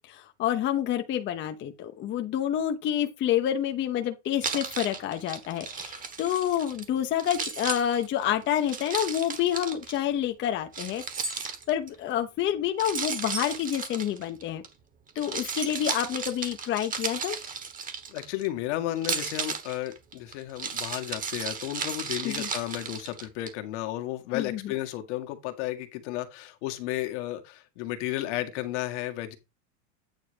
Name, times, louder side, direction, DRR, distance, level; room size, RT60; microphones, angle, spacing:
voice 1, 0.1-11.0 11.3-14.6 15.1-17.4 22.2-22.5 24.3-24.6, left 10 dB, 30° left, 0.9 m, -28 dB
Keys jangling, 4.4-6.9 7.2-10.0 10.7-11.9 12.8-14.7 15.1-18.5 19.0-23.5, right 5 dB, 20° right, 1.3 m, -34 dB
voice 2, 18.1-29.4, left 14 dB, 70° left, 1.8 m, -33 dB
9.2 x 4.1 x 5.1 m
supercardioid pair, 140°, 36 cm